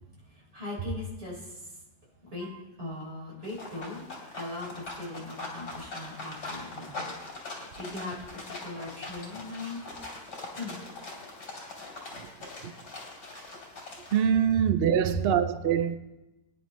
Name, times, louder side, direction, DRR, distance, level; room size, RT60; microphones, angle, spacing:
voice 1, 0.1-1.8 2.2-2.5 2.8-10.0 10.5-10.8 14.6-14.7 15.0-15.2, left 1 dB, 35° right, 4.5 m, -39 dB
sound 1, 3.4-14.2, left 2 dB, 80° left, 3.6 m, -42 dB
voice 2, 14.1-16.0, right 9 dB, 85° right, 0.5 m, -24 dB
22.0 x 10.0 x 3.1 m
omnidirectional pair, 1.8 m